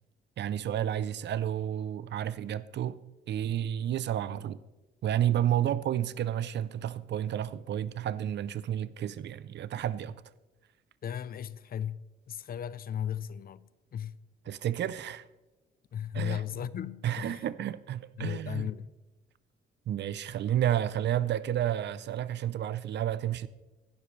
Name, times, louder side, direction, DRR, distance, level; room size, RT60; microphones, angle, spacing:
voice 1, 0.4-3.0 3.3-4.6 5.0-10.2 14.5-15.3 16.1-16.4 17.0-18.7 19.9-23.5, right 11 dB, 60° right, 0.5 m, -31 dB
voice 2, 11.0-14.2 15.9-17.5 18.2-18.9, left 9 dB, 50° left, 0.5 m, -36 dB
16.5 x 12.0 x 3.2 m
cardioid pair, 90°, 20 cm